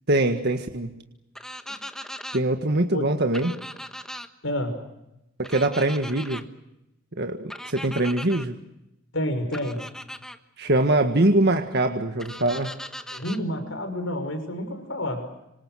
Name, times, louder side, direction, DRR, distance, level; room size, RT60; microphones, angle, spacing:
voice 1, 0.1-0.9 2.3-3.5 5.4-6.4 7.2-8.6 10.6-12.7, right 2 dB, 55° right, 5 dB, 1.7 m, -23 dB
sound 1, 1.3-2.4 3.3-4.3 5.4-6.4 7.5-8.5 9.5-10.4 12.2-13.4, left 1 dB, 5° left, 1.3 m, -38 dB
voice 2, 4.4-4.7 9.1-9.8 13.1-15.3, left 1 dB, 80° left, 6 dB, 6.0 m, -29 dB
26.5 x 26.5 x 6.4 m, 0.88 s
head